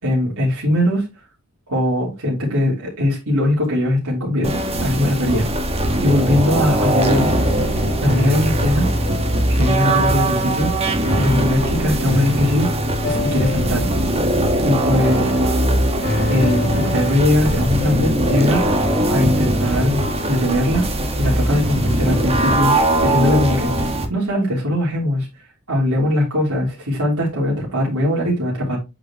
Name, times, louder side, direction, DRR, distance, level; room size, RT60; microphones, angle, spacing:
voice 1, 0.0-1.1 1.7-4.5 4.8-7.3 8.0-8.9 9.5-12.7 13.0-13.9 14.6-15.4 16.3-20.8 21.2-25.3 25.7-28.8, left 1 dB, 75° right, 3.4 m, -20 dB
sound 1, 4.4-24.1, right 1 dB, 25° right, 1.6 m, -20 dB
sound 2, 6.1-22.4, equal, 45° left, 5.2 m, -27 dB
sound 3, 20.5-23.9, right 2 dB, 20° left, 2.0 m, -38 dB
8.8 x 5.1 x 3.0 m
head